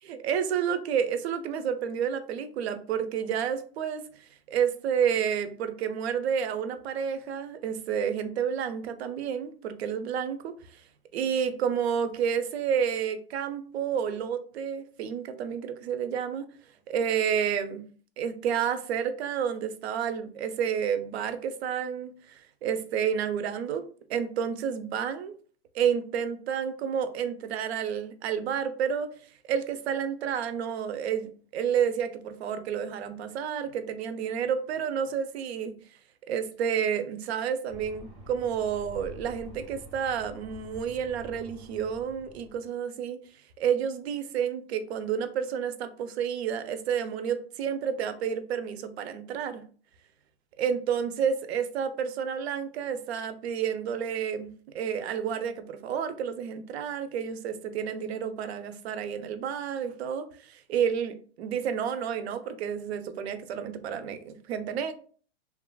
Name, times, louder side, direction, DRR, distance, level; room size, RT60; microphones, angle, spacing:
voice 1, 0.0-10.5 11.1-16.5 16.9-17.8 18.2-23.8 24.1-25.3 25.7-29.1 29.5-35.7 36.3-43.2 43.6-49.6 50.6-64.9, right 8 dB, 80° right, 10 dB, 0.5 m, -30 dB
sound 1, 37.7-42.7, left 1 dB, 25° right, 0.5 m, -47 dB
2.8 x 2.4 x 2.2 m, 0.43 s
supercardioid pair, 160°, 31 cm